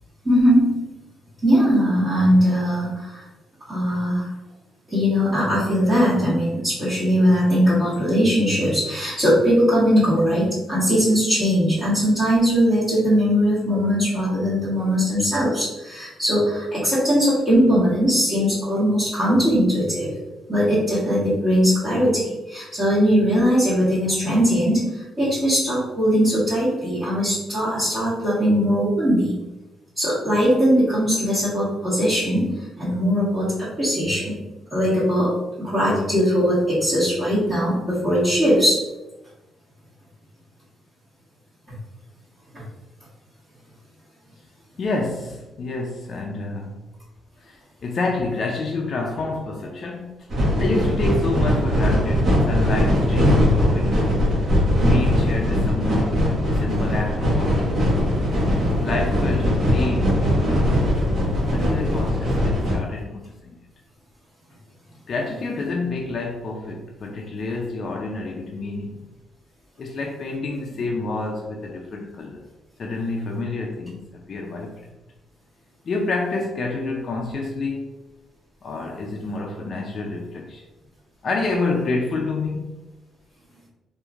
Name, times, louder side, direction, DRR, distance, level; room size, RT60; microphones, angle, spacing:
voice 1, 0.2-0.8 1.4-3.2 3.7-4.3 4.9-20.1 20.5-29.4 30.0-34.4 34.7-38.8, equal, 25° right, -13 dB, 1.3 m, -20 dB
voice 2, 44.8-46.8 47.4-54.3 54.7-56.2 56.5-57.8 58.8-61.0 61.5-63.5 65.1-69.1 69.8-72.5 72.8-74.9 75.9-77.9 78.6-80.6 81.2-82.8, left 3 dB, 50° left, 0 dB, 0.3 m, -28 dB
sound 1, 50.3-62.8, equal, 60° right, 1.0 m, -20 dB
2.9 x 2.4 x 2.4 m, 1.0 s
cardioid pair, 90°, 0 cm